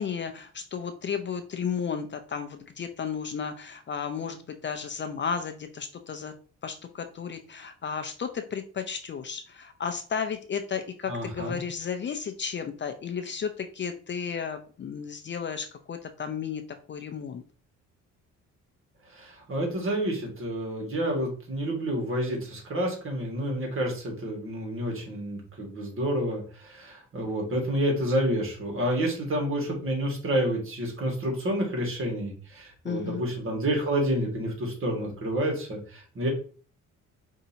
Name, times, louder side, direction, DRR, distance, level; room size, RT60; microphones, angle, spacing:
voice 1, 0.0-6.3 6.6-16.6 16.9-17.4 32.8-33.2, left 6 dB, 40° left, 7 dB, 0.5 m, -33 dB
voice 2, 11.1-11.6 19.1-36.3, right 1 dB, 45° right, 0 dB, 1.8 m, -29 dB
5.2 x 2.8 x 2.8 m, 0.41 s
cardioid pair, 90°, 30 cm